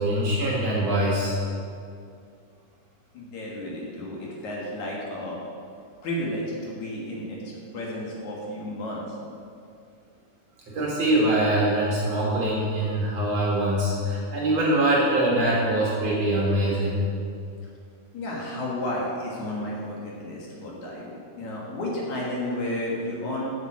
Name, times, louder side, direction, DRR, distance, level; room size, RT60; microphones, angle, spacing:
voice 1, 0.0-1.3 10.7-17.0, right 1 dB, 55° right, -5 dB, 2.3 m, -23 dB
voice 2, 3.1-5.4 6.0-9.2 18.1-23.5, left 1 dB, 60° left, -4 dB, 2.7 m, -32 dB
7.8 x 7.6 x 7.3 m, 2.4 s
omnidirectional pair, 4.2 m